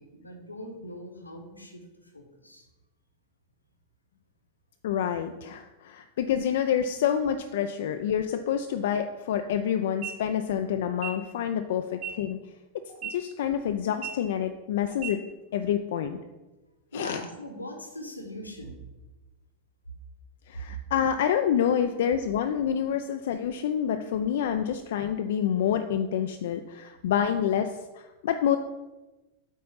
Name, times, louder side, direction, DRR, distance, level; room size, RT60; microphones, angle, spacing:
voice 1, 0.0-2.6 16.9-18.8, left 1 dB, 85° left, 3 dB, 1.2 m, -41 dB
voice 2, 4.8-12.4 13.0-15.2 15.5-16.2 16.9-17.2 20.5-28.6, left 9 dB, 55° left, 7 dB, 0.4 m, -27 dB
sound 1, 9.9-10.1 10.9-11.1 11.9-12.1 12.9-13.1 13.9-14.1 14.9-15.1, right 10 dB, 35° right, 2.8 m, -35 dB
8.2 x 4.2 x 5.6 m, 1.1 s
figure-of-eight pair, 90°, 0 cm